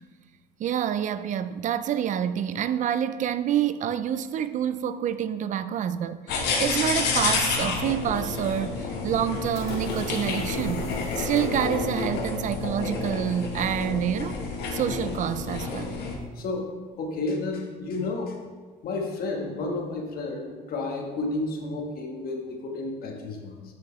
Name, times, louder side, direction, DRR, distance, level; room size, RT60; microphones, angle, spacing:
voice 1, 0.6-10.9 11.2-14.4 14.7-16.0, right 9 dB, 50° right, 0.4 m, -27 dB
sound 1, 6.3-16.1, left 4 dB, 80° left, 1.2 m, -29 dB
sound 2, 9.1-11.6, left 3 dB, 40° left, 2.2 m, -43 dB
voice 2, 16.3-16.7 17.0-18.4 18.8-23.6, left 2 dB, 60° left, 1.3 m, -31 dB
7.0 x 6.5 x 3.1 m
cardioid pair, 110°, 17 cm